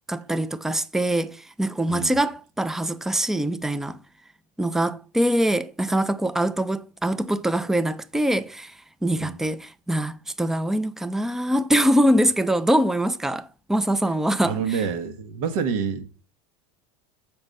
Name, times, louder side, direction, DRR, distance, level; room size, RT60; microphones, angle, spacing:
voice 1, 0.1-4.0 4.6-14.8, right 1 dB, ahead, 0.4 m, -23 dB
voice 2, 14.4-16.0, right 6 dB, 75° right, 1.6 m, -27 dB
7.0 x 5.4 x 5.3 m
supercardioid pair, 125°, 18 cm